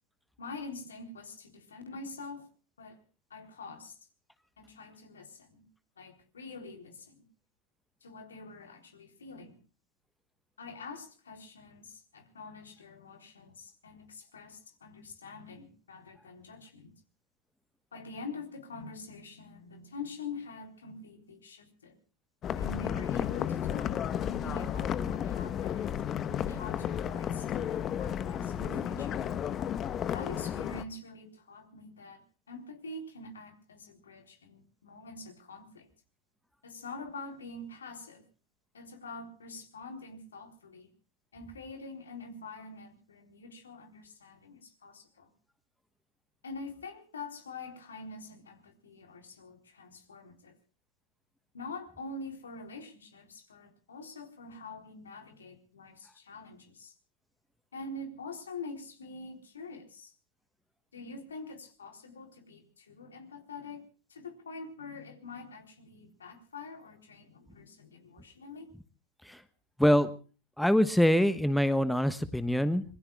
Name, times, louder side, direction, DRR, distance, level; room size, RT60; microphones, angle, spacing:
voice 1, 0.4-2.5 2.8-3.0 3.3-4.0 4.6-5.6 6.0-7.3 8.0-9.6 10.6-17.0 17.9-22.0 22.6-26.0 26.4-29.4 30.1-35.9 36.6-38.2 38.7-40.9 41.3-45.3 46.4-50.5 51.5-56.9 57.7-60.1 60.9-63.8 64.1-68.7, left 3 dB, 80° left, 5 dB, 3.8 m, -45 dB
sound 1, 22.4-30.8, left 9 dB, 35° left, 1.2 m, -33 dB
voice 2, 69.8-70.1 70.6-72.8, equal, ahead, 12 dB, 1.3 m, -24 dB
26.0 x 22.5 x 2.4 m, 0.37 s
hypercardioid pair, 95°, 0 cm